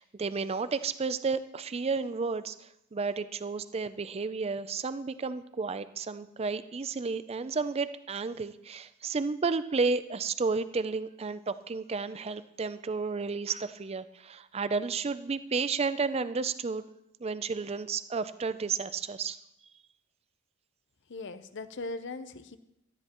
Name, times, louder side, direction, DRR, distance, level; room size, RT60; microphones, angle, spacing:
voice 1, 0.0-16.8 17.2-19.4, right 4 dB, 25° right, 13 dB, 0.4 m, -32 dB
voice 2, 21.1-22.6, left 3 dB, 55° left, 12 dB, 0.7 m, -39 dB
17.5 x 12.5 x 3.0 m, 0.82 s
head